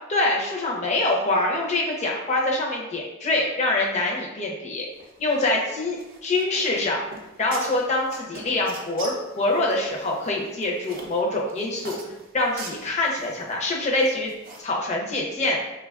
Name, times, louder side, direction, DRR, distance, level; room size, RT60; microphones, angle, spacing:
voice 1, 0.1-4.9 5.2-7.0 7.4-12.0 12.3-14.3 14.6-15.6, left 2 dB, 35° left, -1 dB, 0.5 m, -25 dB
sound 1, 4.9-14.6, right 3 dB, 45° right, 0.4 m, -43 dB
3.2 x 2.2 x 2.3 m, 0.97 s
head